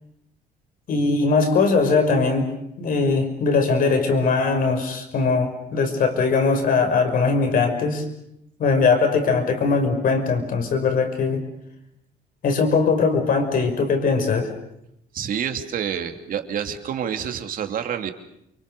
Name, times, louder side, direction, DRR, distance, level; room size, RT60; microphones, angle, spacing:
voice 1, 0.9-2.5 2.8-8.0 8.6-11.4 12.4-14.5, left 4 dB, 55° left, 6 dB, 5.6 m, -20 dB
voice 2, 15.1-18.1, right 8 dB, 55° right, 6 dB, 2.7 m, -28 dB
29.5 x 23.5 x 6.8 m, 0.79 s
cardioid pair, 110°, 17 cm